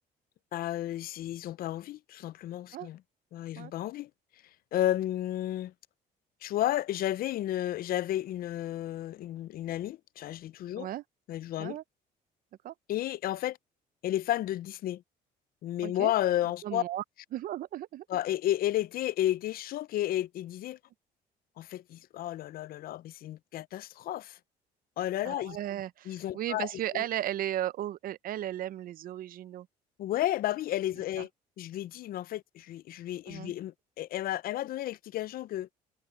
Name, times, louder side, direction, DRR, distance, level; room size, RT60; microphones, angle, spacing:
voice 1, 0.5-3.0 3.3-4.1 4.7-5.7 6.4-10.9 11.3-11.8 12.9-13.6 14.0-15.0 15.6-16.8 18.1-20.8 21.6-24.4 25.0-25.6 26.1-26.7 30.0-31.3 31.6-35.7, left 13 dB, 60° left, 0.5 m, -32 dB
voice 2, 15.8-16.1 16.6-17.0 17.3-18.0 25.2-29.7 31.2-31.3 33.3-33.5, right 12 dB, 60° right, 0.5 m, -35 dB
cardioid pair, 110°, 17 cm